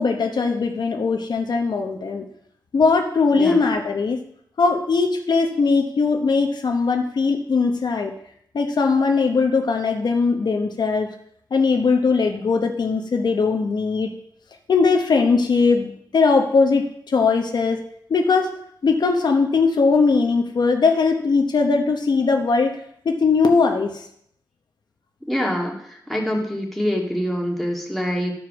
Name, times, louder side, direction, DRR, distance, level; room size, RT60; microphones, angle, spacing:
voice 1, 0.0-2.3 2.7-4.2 4.6-8.1 8.5-11.1 11.5-14.1 14.7-17.8 18.1-18.5 18.8-22.8 23.0-23.9, left 4 dB, 70° left, 4 dB, 1.0 m, -20 dB
voice 2, 25.3-28.3, equal, ahead, -1 dB, 2.0 m, -25 dB
12.0 x 4.8 x 6.2 m, 0.68 s
wide cardioid pair, 125°, 8 cm